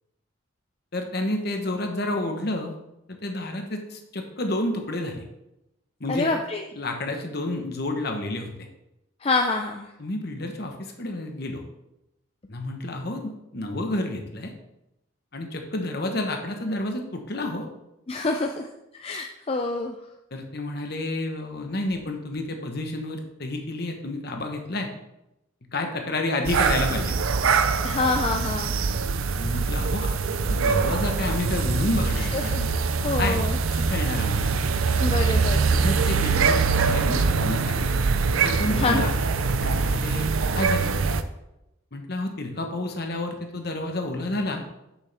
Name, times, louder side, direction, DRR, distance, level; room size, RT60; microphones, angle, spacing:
voice 1, 0.9-2.8 3.1-5.2 6.0-6.3 6.7-8.5 10.0-11.6 12.5-14.5 15.3-17.7 20.3-24.9 25.7-27.2 29.3-30.2 30.5-32.8 33.2-33.4 33.7-34.6 35.7-37.9 38.4-39.1 39.6-40.3 40.5-41.0 41.9-44.6, left 2 dB, 50° left, 4 dB, 1.2 m, -30 dB
voice 2, 6.1-6.6 9.2-9.9 18.1-18.7 18.9-19.9 27.8-28.7 32.3-32.7 33.0-33.6 35.0-35.7 38.8-39.1, left 3 dB, 30° left, 3 dB, 0.4 m, -26 dB
sound 1, 26.4-41.2, right 4 dB, 85° right, 0.5 m, -23 dB
8.3 x 7.0 x 3.4 m, 0.89 s
head